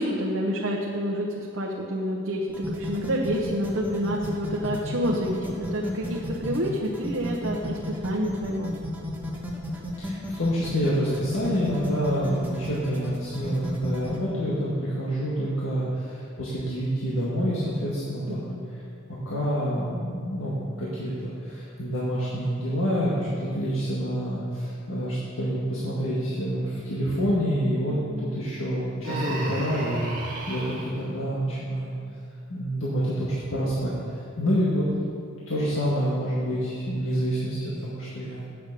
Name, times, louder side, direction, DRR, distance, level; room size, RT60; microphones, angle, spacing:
voice 1, 0.0-8.7 18.3-18.7 27.9-28.2, equal, 65° right, -2 dB, 0.8 m, -28 dB
sound 1, 2.5-14.2, equal, 10° right, 1.2 m, -33 dB
voice 2, 10.0-18.5 19.1-31.9 32.5-33.9 34.4-34.9 35.5-38.4, equal, 75° left, -8 dB, 1.8 m, -27 dB
Human voice, 29.0-30.9, right 1 dB, 40° right, 1.6 m, -32 dB
8.6 x 6.8 x 6.6 m, 2.4 s
head